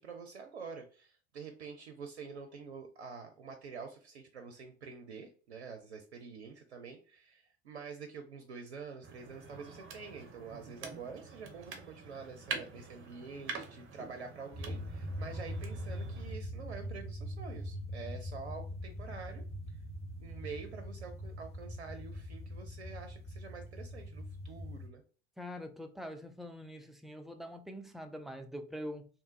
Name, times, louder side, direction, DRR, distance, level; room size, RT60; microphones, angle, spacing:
voice 1, 0.0-19.8 20.2-25.0, right 5 dB, 80° right, 0.5 m, -47 dB
sound 1, 9.0-16.4, right 5 dB, 40° right, 0.8 m, -46 dB
sound 2, 14.5-24.9, equal, 20° left, 1.1 m, -42 dB
voice 2, 25.4-29.1, equal, ahead, 0.3 m, -44 dB
3.5 x 2.7 x 2.6 m
figure-of-eight pair, 70°, 32 cm